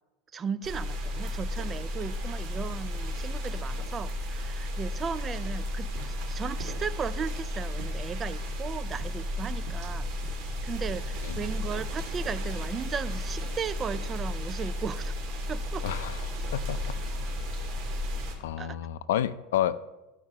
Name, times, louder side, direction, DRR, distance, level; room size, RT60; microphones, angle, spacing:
voice 1, 0.3-5.9 6.2-10.1 10.6-15.1 15.5-15.8 18.6-18.8, right 6 dB, 25° right, 15 dB, 0.4 m, -36 dB
sound 1, 0.6-18.3, left 1 dB, 50° right, 2.4 m, -33 dB
sound 2, 5.9-11.7, right 6 dB, 70° right, 1.7 m, -48 dB
voice 2, 15.8-17.0 18.4-19.7, left 11 dB, 90° left, 15 dB, 0.4 m, -30 dB
13.5 x 4.9 x 4.3 m, 1.0 s
supercardioid pair, 135°, 0 cm